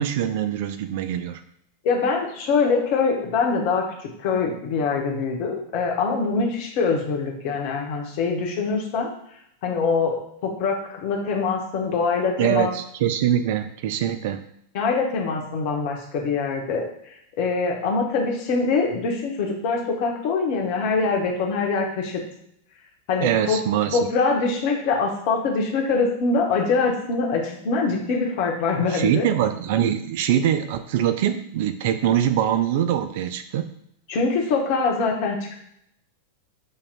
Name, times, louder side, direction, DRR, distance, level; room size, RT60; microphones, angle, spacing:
voice 1, 0.0-1.4 12.4-14.4 23.2-24.0 28.9-33.6, right 10 dB, 50° right, 10 dB, 0.3 m, -23 dB
voice 2, 1.8-9.1 9.6-10.2 10.4-12.7 14.7-16.9 17.4-22.2 23.1-23.6 23.9-29.3 34.1-35.5, left 4 dB, 45° left, 0 dB, 1.0 m, -24 dB
6.5 x 2.9 x 2.5 m, 0.73 s
figure-of-eight pair, 90°, 0 cm